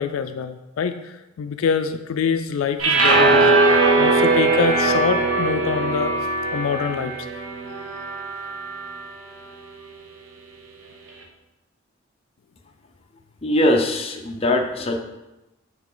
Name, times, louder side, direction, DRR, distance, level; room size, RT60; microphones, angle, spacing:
voice 1, 0.0-6.3 6.5-7.1, left 6 dB, 80° left, 9 dB, 0.3 m, -25 dB
sound 1, 2.8-9.1, right 3 dB, 85° right, 1.0 m, -20 dB
voice 2, 13.4-15.0, left 1 dB, 30° left, 2 dB, 0.6 m, -21 dB
8.6 x 3.3 x 3.8 m, 1.0 s
head